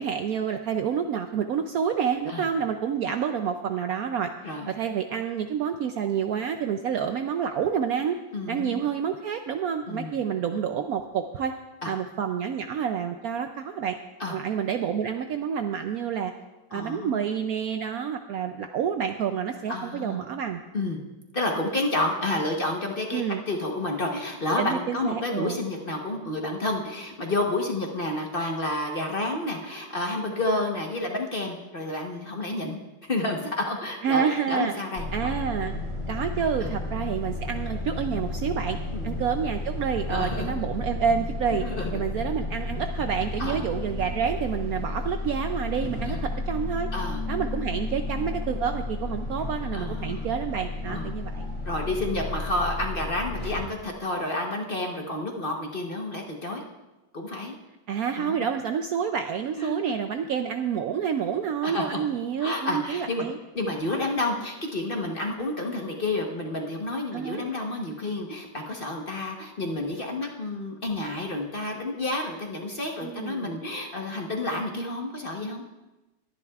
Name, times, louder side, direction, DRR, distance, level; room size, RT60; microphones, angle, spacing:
voice 1, 0.0-4.3 4.7-8.2 8.5-11.5 11.8-14.0 14.3-16.3 16.7-20.6 23.1-23.4 24.6-25.6 34.0-34.7 35.1-35.8 36.1-38.8 39.0-41.6 41.9-46.9 47.3-51.5 57.9-63.4 67.1-67.4 73.0-73.5, right 7 dB, 70° right, 6 dB, 0.9 m, -28 dB
voice 2, 8.3-8.9 9.9-10.2 11.8-11.9 14.2-14.4 16.7-17.2 19.7-20.2 20.7-21.0 21.3-35.3 36.6-36.7 38.9-39.1 40.1-40.6 41.5-42.0 43.4-43.6 46.1-46.2 46.9-47.2 49.7-50.3 50.9-51.1 51.6-56.6 57.1-57.5 58.2-58.5 59.6-59.9 61.6-62.0 62.4-63.3 63.5-75.6, left 2 dB, 35° left, 1 dB, 1.0 m, -30 dB
sound 1, 35.0-53.6, left 2 dB, 20° left, 2.5 m, -32 dB
21.0 x 10.5 x 2.4 m, 1.1 s
omnidirectional pair, 1.9 m